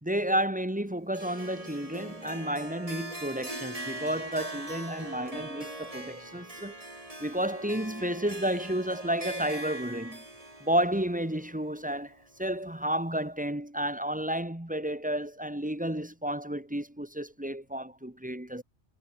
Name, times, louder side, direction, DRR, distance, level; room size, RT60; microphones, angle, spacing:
voice 1, 0.0-6.8 7.2-10.2 10.6-18.6, right 1 dB, 5° right, 1.8 m, -31 dB
Harp, 1.1-12.4, right 1 dB, 30° right, 3.8 m, -42 dB
omnidirectional pair, 1.1 m